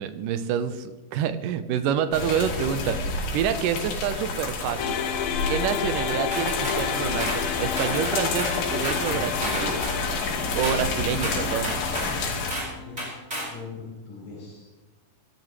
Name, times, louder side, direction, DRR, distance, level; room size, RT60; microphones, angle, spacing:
voice 1, 0.0-5.0 5.5-9.8 10.6-11.7, right 8 dB, 75° right, 10 dB, 2.0 m, -28 dB
sound 1, 2.1-12.5, left 3 dB, 90° left, 4.4 m, -29 dB
sound 2, 4.8-13.1, left 8 dB, 75° left, 2.4 m, -32 dB
sound 3, 6.3-6.8 7.2-7.4 7.8-8.6 8.8-10.0 10.6-10.8 11.2-12.1 12.5-12.7 13.0-13.5, right 1 dB, 10° right, 5.1 m, -32 dB
voice 2, 11.0-11.5 12.7-13.1 13.5-14.7, left 3 dB, 45° left, -9 dB, 6.9 m, -40 dB
25.0 x 12.5 x 3.2 m, 1.2 s
omnidirectional pair, 4.7 m